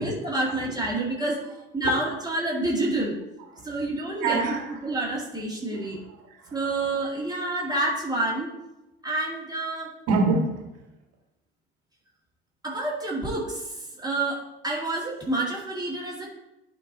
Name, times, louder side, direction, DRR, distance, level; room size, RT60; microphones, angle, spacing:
voice 1, 0.0-1.4 1.7-3.2 3.6-4.4 4.8-6.0 6.5-8.5 9.0-9.9 12.6-13.7 14.0-16.3, right 2 dB, 15° right, -4 dB, 2.1 m, -28 dB
voice 2, 4.2-4.9 5.7-6.6 10.1-10.6, right 3 dB, 55° right, 1 dB, 1.9 m, -27 dB
12.5 x 4.6 x 2.8 m, 0.97 s
figure-of-eight pair, 65°, 30 cm